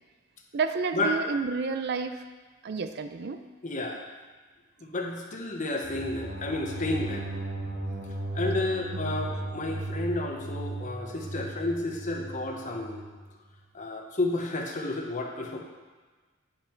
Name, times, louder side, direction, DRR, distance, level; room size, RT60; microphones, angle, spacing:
voice 1, 0.5-2.2 2.6-3.4, right 5 dB, 55° right, 8 dB, 0.5 m, -30 dB
voice 2, 3.6-4.0 4.8-7.3 8.3-13.0 13.7-15.6, left 2 dB, 40° left, 1 dB, 1.0 m, -31 dB
sound 1, 5.8-13.1, right 2 dB, 85° right, 1.7 m, -36 dB
9.5 x 5.5 x 4.5 m, 1.3 s
head